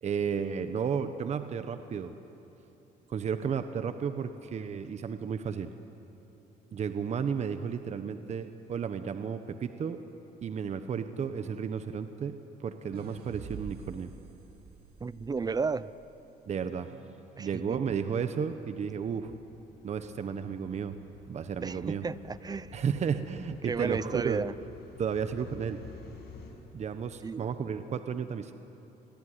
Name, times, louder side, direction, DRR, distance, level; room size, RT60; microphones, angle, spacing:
voice 1, 0.0-2.1 3.1-5.7 6.7-10.0 10.4-14.1 16.5-19.3 19.8-21.0 21.3-22.0 22.7-24.4 25.0-25.8 26.7-28.5, right 7 dB, 40° right, 9 dB, 1.1 m, -33 dB
sound 1, 12.9-16.2, right 5 dB, 65° right, 2.2 m, -47 dB
voice 2, 15.0-15.9 17.4-17.8 21.6-22.8 23.6-24.5 27.2-27.5, right 4 dB, 25° right, 17 dB, 0.7 m, -33 dB
sound 2, 18.2-26.5, left 5 dB, 80° left, 5.9 m, -52 dB
27.5 x 21.0 x 9.8 m, 3.0 s
cardioid pair, 110°, 17 cm